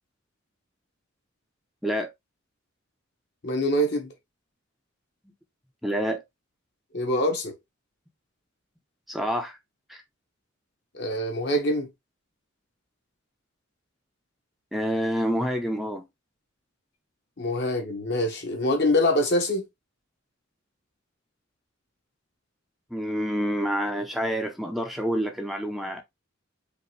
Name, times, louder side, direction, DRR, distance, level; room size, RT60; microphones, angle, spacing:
voice 1, 1.8-2.1 5.8-6.2 9.1-9.6 9.9-10.0 14.7-16.1 22.9-26.0, equal, ahead, 0.5 m, -28 dB
voice 2, 3.4-4.1 6.9-7.5 10.9-11.9 17.4-19.6, left 1 dB, 55° left, 1.4 m, -24 dB
5.1 x 2.6 x 3.1 m
head